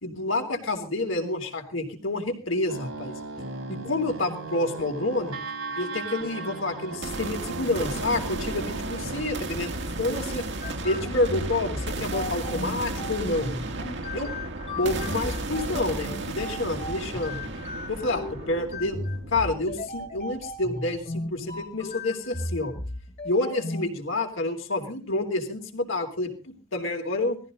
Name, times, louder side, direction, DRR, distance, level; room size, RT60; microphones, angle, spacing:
voice 1, 0.0-3.1 3.7-5.4 5.8-9.7 10.0-10.4 10.8-13.5 14.1-14.3 14.7-17.4 17.9-19.0 19.3-22.7 23.2-27.4, left 2 dB, 75° left, 3 dB, 3.5 m, -28 dB
sound 1, 2.7-9.2, right 3 dB, 85° right, 4.6 m, -37 dB
sound 2, 7.0-21.0, right 2 dB, 60° right, 1.8 m, -34 dB
sound 3, 10.6-23.8, left 1 dB, 35° left, 2.4 m, -36 dB
19.5 x 14.5 x 3.9 m, 0.35 s
head